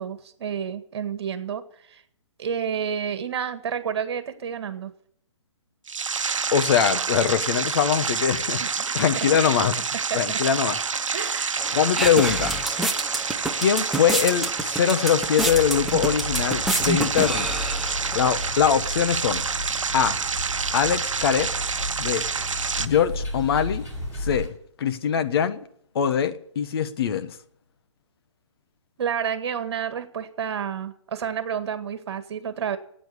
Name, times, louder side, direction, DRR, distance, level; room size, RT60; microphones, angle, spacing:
voice 1, 0.0-2.0 2.4-4.9 8.6-9.3 9.7-9.8 10.1-10.2 11.1-11.6 29.0-32.8, right 7 dB, 55° right, 1.9 m, -30 dB
sound 1, 5.9-22.9, right 5 dB, 85° right, 0.9 m, -28 dB
voice 2, 6.5-8.6 8.9-9.8 10.1-10.8 11.7-12.5 13.6-17.5 18.1-19.4 19.9-20.2 20.7-21.5 22.0-22.2 22.8-23.9 24.2-24.5 24.8-25.6 25.9-27.3, left 8 dB, 50° left, 1.3 m, -22 dB
sound 2, 11.6-18.5, right 2 dB, ahead, 0.9 m, -29 dB
sound 3, 15.4-24.5, left 1 dB, 15° left, 5.0 m, -34 dB
13.5 x 9.1 x 9.9 m
hypercardioid pair, 145°, 16 cm